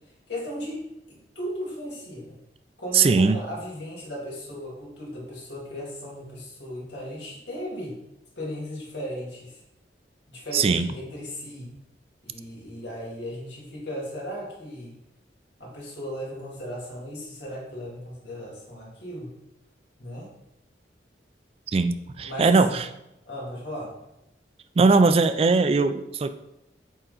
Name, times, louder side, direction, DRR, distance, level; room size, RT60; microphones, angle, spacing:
voice 1, 0.3-2.4 2.8-8.0 8.4-9.6 10.3-11.7 12.2-14.9 15.6-19.3 20.0-20.3 22.2-22.8 23.2-23.9, equal, 75° left, -4 dB, 2.6 m, -36 dB
voice 2, 2.9-3.4 10.5-10.9 21.7-22.9 24.8-26.3, right 4 dB, 35° right, 10 dB, 0.3 m, -20 dB
8.7 x 3.8 x 4.0 m, 0.87 s
head